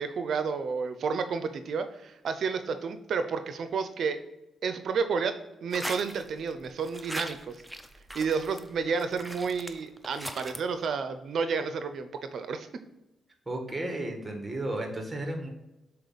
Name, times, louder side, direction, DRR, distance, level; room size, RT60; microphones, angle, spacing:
voice 1, 0.0-4.2 4.6-5.3 5.6-7.6 8.1-12.7, right 5 dB, 70° right, 9 dB, 0.5 m, -31 dB
sound 1, 5.7-6.5 6.8-10.6, equal, ahead, 0.6 m, -40 dB
voice 2, 13.4-15.5, right 1 dB, 20° right, 3 dB, 1.8 m, -33 dB
6.7 x 4.2 x 4.0 m, 0.97 s
cardioid pair, 70°, 0 cm